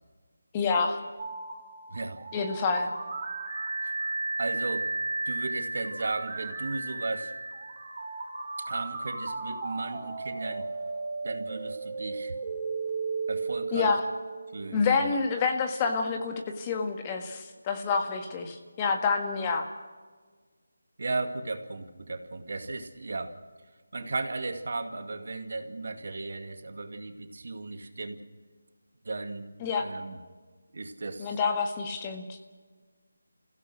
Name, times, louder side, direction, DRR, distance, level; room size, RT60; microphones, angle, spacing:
voice 1, 0.5-1.0 2.3-2.9 13.7-14.0 14.7-19.7 29.6-29.9 31.2-32.4, left 5 dB, 20° left, 4 dB, 1.7 m, -28 dB
sound 1, 1.2-15.0, right 3 dB, 30° right, 6.8 m, -35 dB
voice 2, 1.9-2.2 3.8-4.0 4.4-4.9 5.3-7.3 8.6-10.7 11.2-12.3 13.3-14.0 14.5-15.2 21.0-23.4 23.9-28.2 29.0-29.5 29.8-30.2 30.7-31.4, right 3 dB, 60° right, 7 dB, 2.2 m, -35 dB
30.0 x 16.0 x 6.4 m, 1.5 s
figure-of-eight pair, 165°, 0 cm